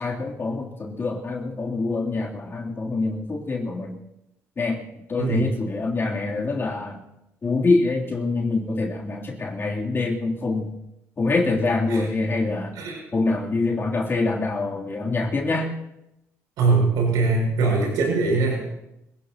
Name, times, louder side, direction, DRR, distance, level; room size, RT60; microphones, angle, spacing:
voice 1, 0.0-4.0 4.6-4.8 5.1-7.0 7.4-10.8 11.2-12.7 13.1-15.7, left 3 dB, 40° left, -1 dB, 3.1 m, -25 dB
voice 2, 5.2-5.5 11.9-12.1 12.7-13.0 16.6-18.6, right 3 dB, 85° right, -1 dB, 6.3 m, -21 dB
24.5 x 16.5 x 2.9 m, 0.87 s
cardioid pair, 75°, 6 cm